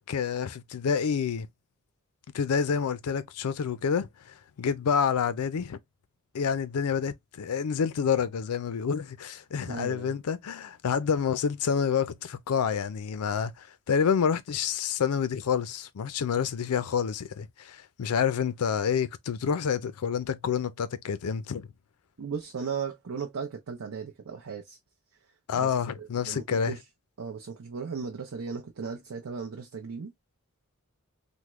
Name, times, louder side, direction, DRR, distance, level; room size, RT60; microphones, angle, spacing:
voice 1, 0.1-1.5 2.3-4.1 4.6-5.8 6.3-21.7 25.5-26.7, left 7 dB, 85° left, 0.4 m, -28 dB
voice 2, 9.6-10.2 22.2-24.8 25.5-26.8 27.2-30.1, right 5 dB, 75° right, 0.6 m, -36 dB
3.5 x 2.1 x 3.0 m
head